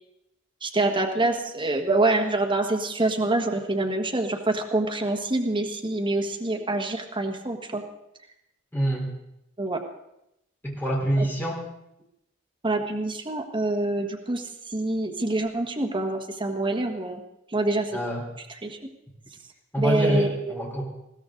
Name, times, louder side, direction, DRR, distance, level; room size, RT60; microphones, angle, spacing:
voice 1, 0.6-7.8 9.6-9.8 11.2-11.3 12.6-17.2 17.5-17.9 18.6-18.8 19.8-20.3, right 2 dB, 25° right, 2 dB, 1.4 m, -26 dB
voice 2, 8.7-9.1 10.6-11.6 17.9-18.2 19.7-20.8, right 1 dB, 10° left, -2 dB, 3.9 m, -25 dB
20.5 x 15.5 x 3.8 m, 0.83 s
head